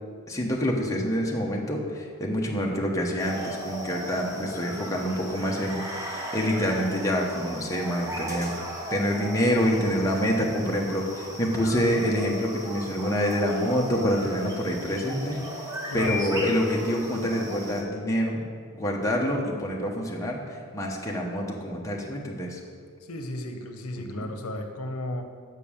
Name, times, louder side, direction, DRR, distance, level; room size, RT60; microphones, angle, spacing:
voice 1, 0.3-8.6 8.9-15.4 15.7-18.4 18.7-22.6 24.1-24.3, equal, 15° left, -1 dB, 1.0 m, -27 dB
sound 1, 3.2-17.8, equal, 15° right, 1.1 m, -37 dB
voice 2, 15.9-16.6 23.0-25.2, left 1 dB, 75° left, 5 dB, 0.8 m, -34 dB
6.9 x 6.1 x 7.0 m, 2.1 s
head